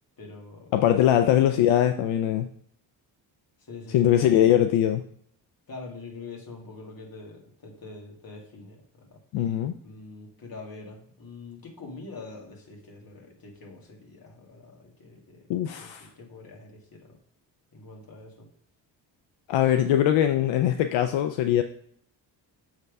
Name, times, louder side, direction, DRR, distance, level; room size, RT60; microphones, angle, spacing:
voice 1, 0.2-1.2 3.6-4.3 5.7-9.2 9.8-15.5 15.8-17.2 17.7-18.5, left 3 dB, 50° left, 0 dB, 2.3 m, -44 dB
voice 2, 0.7-2.5 3.9-5.0 9.3-9.7 15.5-16.1 19.5-21.6, left 11 dB, 85° left, 8 dB, 0.6 m, -21 dB
7.3 x 3.4 x 5.3 m, 0.63 s
cardioid pair, 70°, 44 cm